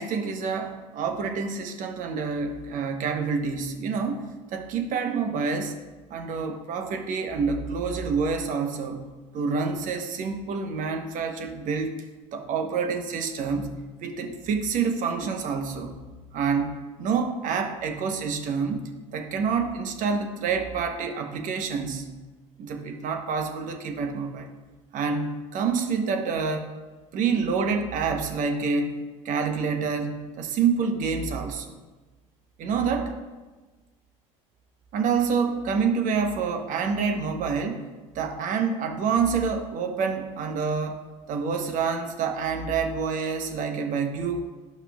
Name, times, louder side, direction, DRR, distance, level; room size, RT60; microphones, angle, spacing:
voice 1, 0.0-5.7 6.1-9.0 9.3-12.0 12.3-15.9 16.3-22.1 22.6-24.5 24.9-26.7 27.1-29.0 29.2-31.7 32.6-33.1 34.9-37.9 38.1-41.0 41.3-44.4, right 5 dB, 50° right, 6 dB, 1.0 m, -27 dB
11.5 x 5.6 x 2.4 m, 1.2 s
hypercardioid pair, 75°, 17 cm